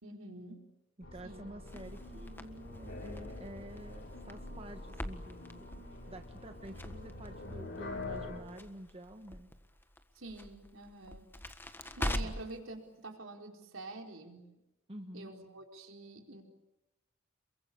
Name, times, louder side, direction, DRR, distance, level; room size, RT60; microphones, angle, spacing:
voice 1, 0.0-0.6 1.2-1.5 10.1-11.3 12.0-14.5 15.1-16.4, right 2 dB, 75° right, 2 dB, 4.5 m, -47 dB
sound 1, 1.0-8.4, left 2 dB, 60° left, 7.3 m, -45 dB
voice 2, 1.0-9.5 12.2-12.3 14.9-15.3, right 1 dB, 30° right, 5 dB, 1.3 m, -49 dB
Crackle, 1.7-12.6, left 1 dB, 10° left, 1.4 m, -44 dB
28.5 x 22.5 x 8.6 m, 0.98 s
head